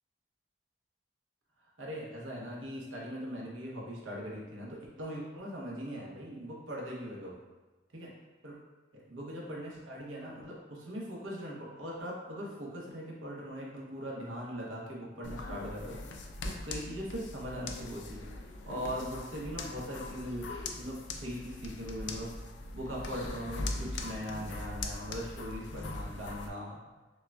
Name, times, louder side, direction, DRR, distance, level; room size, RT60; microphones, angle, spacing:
voice 1, 1.8-7.4 7.9-8.1 8.4-8.6 9.0-16.2 16.4-18.2 18.7-20.5 20.8-22.3 22.7-26.8, equal, 90° right, -4 dB, 1.0 m, -40 dB
sound 1, 15.2-26.5, left 2 dB, 70° left, 0.4 m, -41 dB
6.3 x 2.3 x 2.3 m, 1.2 s
head